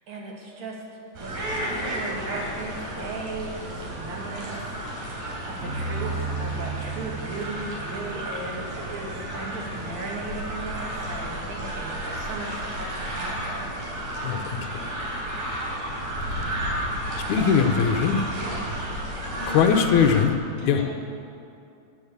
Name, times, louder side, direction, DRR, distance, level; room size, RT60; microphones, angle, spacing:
voice 1, 0.1-0.8 1.2-5.2 5.4-13.7, right 2 dB, 65° right, -2 dB, 3.6 m, -37 dB
sound 1, 1.1-20.2, right 1 dB, 90° right, 4.9 m, -32 dB
sound 2, 5.6-8.7, right 4 dB, 35° right, 2.0 m, -34 dB
voice 2, 14.2-15.0 17.3-18.3 19.5-20.3 20.7-20.8, left 7 dB, 75° left, 6 dB, 2.3 m, -21 dB
voice 3, 18.9-20.1 20.6-20.9, left 1 dB, 55° left, -5 dB, 5.3 m, -38 dB
19.5 x 7.5 x 8.2 m, 2.5 s
omnidirectional pair, 3.5 m